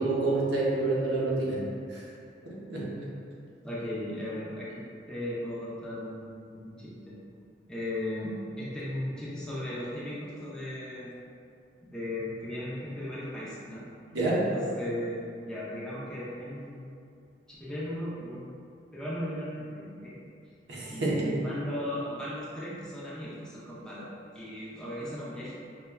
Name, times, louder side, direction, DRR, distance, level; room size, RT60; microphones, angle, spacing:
voice 1, 0.0-2.0 2.5-2.9 14.1-14.5 20.7-21.4, right 2 dB, 75° right, -7 dB, 0.8 m, -28 dB
voice 2, 3.6-4.8 5.1-7.1 7.7-11.1 11.8-13.9 14.5-16.9 17.5-18.6 18.9-20.2 20.9-24.1 24.3-25.5, left 1 dB, 5° left, -9 dB, 0.5 m, -37 dB
5.1 x 2.2 x 2.2 m, 2.5 s
head